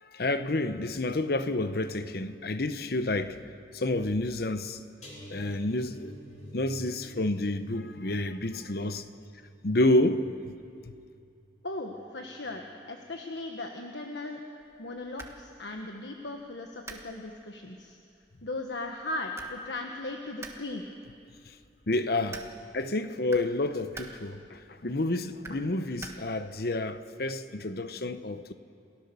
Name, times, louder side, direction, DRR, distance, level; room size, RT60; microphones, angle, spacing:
voice 1, 0.0-3.4 3.7-4.8 5.3-6.1 6.5-9.1 9.6-10.3 21.9-22.5 22.7-28.5, left 2 dB, 55° left, 0.9 m, -29 dB
sound 1, 5.0-12.1 12.4-12.7 13.1-13.2, equal, 35° left, 3.6 m, -49 dB
voice 2, 11.6-14.4 14.8-18.0 18.4-20.8, left 2 dB, 70° left, 1.4 m, -37 dB
sound 2, 14.6-26.6, right 2 dB, 15° right, 1.4 m, -50 dB
28.5 x 17.0 x 7.0 m
head